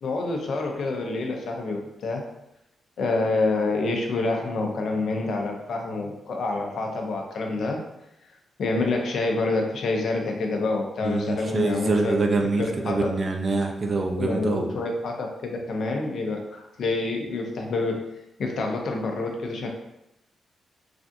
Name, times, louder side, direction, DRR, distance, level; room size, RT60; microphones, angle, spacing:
voice 1, 0.0-2.2 3.0-7.8 8.6-12.2 12.6-13.1 14.2-18.0 18.4-19.7, left 3 dB, 70° left, 2 dB, 0.5 m, -27 dB
voice 2, 11.0-14.7, right 3 dB, 45° right, 3 dB, 0.4 m, -25 dB
3.3 x 2.5 x 2.6 m, 0.87 s
cardioid pair, 100°, 0 cm